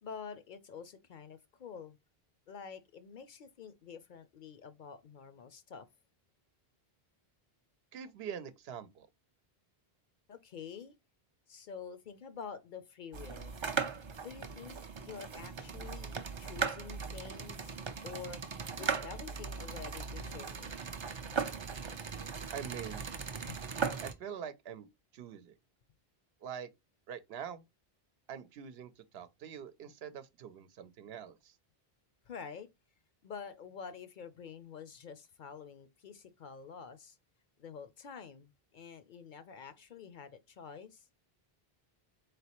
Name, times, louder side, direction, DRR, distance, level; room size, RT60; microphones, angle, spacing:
voice 1, 0.0-2.0 2.5-5.9 10.3-10.9 11.5-13.6 14.2-17.8 18.0-20.8 23.5-23.6 32.3-32.7 33.2-37.2 37.6-41.1, left 6 dB, 60° left, 0.6 m, -48 dB
voice 2, 7.9-9.1 22.5-23.1 24.0-24.9 25.1-25.5 26.4-26.7 27.1-27.6 28.3-31.6, right 8 dB, 80° right, 0.8 m, -44 dB
sound 1, 13.1-24.1, right 5 dB, 45° right, 0.4 m, -38 dB
4.0 x 3.3 x 2.9 m
omnidirectional pair, 1.0 m